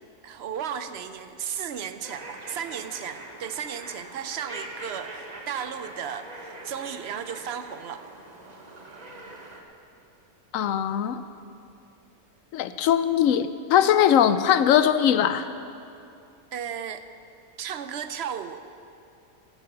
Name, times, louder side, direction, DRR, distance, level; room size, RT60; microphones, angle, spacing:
voice 1, 0.2-8.0 13.8-13.9 16.5-17.0 17.6-18.6, right 8 dB, 60° right, 10 dB, 0.7 m, -34 dB
sound 1, 2.0-9.6, right 2 dB, 30° right, 1.1 m, -43 dB
voice 2, 10.5-11.2 12.5-15.5, left 10 dB, 70° left, 12 dB, 1.0 m, -21 dB
12.0 x 11.5 x 6.9 m, 2.6 s
omnidirectional pair, 1.6 m